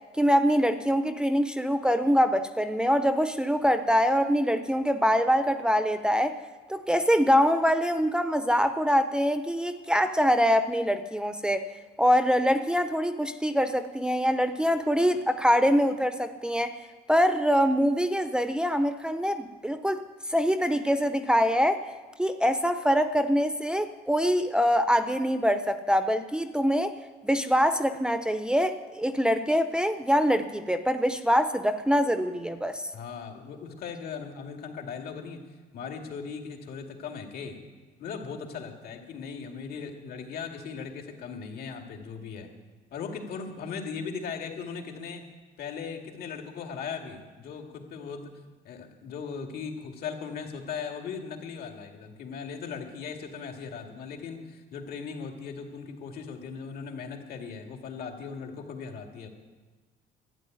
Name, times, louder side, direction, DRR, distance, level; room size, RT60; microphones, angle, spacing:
voice 1, 0.2-6.4 6.7-11.7 12.0-16.8 17.1-20.0 20.3-21.8 22.2-26.9 27.2-32.9, equal, 5° right, 10 dB, 0.7 m, -24 dB
voice 2, 32.9-35.4 35.7-37.6 38.0-42.5 42.9-45.3 45.6-48.3 48.6-59.3, left 6 dB, 65° left, 3 dB, 2.4 m, -38 dB
12.5 x 10.0 x 9.1 m, 1.4 s
cardioid pair, 110°, 17 cm